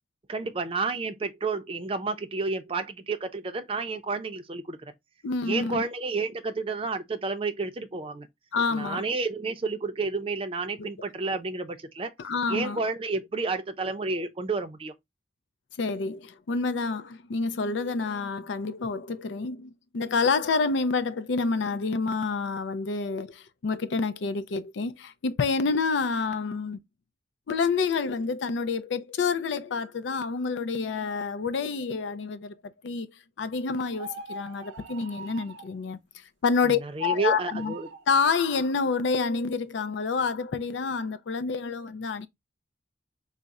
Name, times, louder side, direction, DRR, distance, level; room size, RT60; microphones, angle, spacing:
voice 1, 0.3-4.8 5.4-8.3 8.7-12.1 12.5-14.9 36.6-37.9, right 3 dB, 30° right, 0.5 m, -30 dB
voice 2, 5.2-5.8 8.5-9.0 10.8-10.9 12.2-12.8 15.8-26.8 27.5-33.1 33.4-36.0 36.4-37.7 38.1-42.3, left 4 dB, 80° left, 0.4 m, -28 dB
sound 1, 33.9-35.8 37.1-38.1, right 3 dB, 85° right, 0.6 m, -43 dB
3.9 x 2.1 x 3.5 m
head